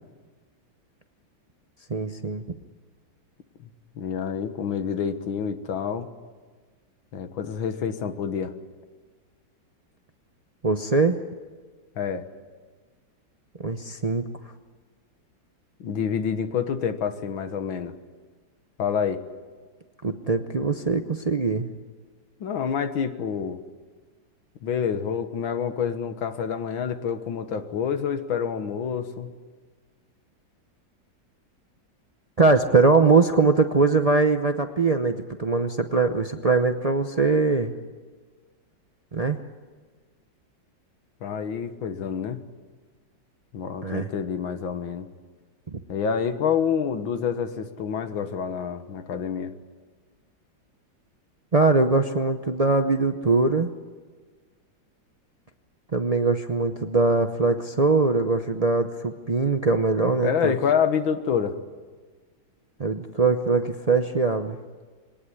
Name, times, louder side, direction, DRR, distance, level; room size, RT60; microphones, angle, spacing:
voice 1, 1.9-2.4 10.6-11.2 13.6-14.3 20.0-21.7 32.4-37.7 39.1-39.4 43.8-44.1 45.7-45.8 51.5-53.7 55.9-60.5 62.8-64.6, right 3 dB, 65° right, 6 dB, 0.3 m, -22 dB
voice 2, 4.0-6.1 7.1-8.5 12.0-12.3 15.8-17.9 18.8-19.2 22.4-23.6 24.6-29.3 41.2-42.4 43.5-45.1 45.9-49.5 60.2-61.6, left 7 dB, 90° left, 9 dB, 2.1 m, -27 dB
22.0 x 19.0 x 9.9 m, 1.5 s
omnidirectional pair, 2.1 m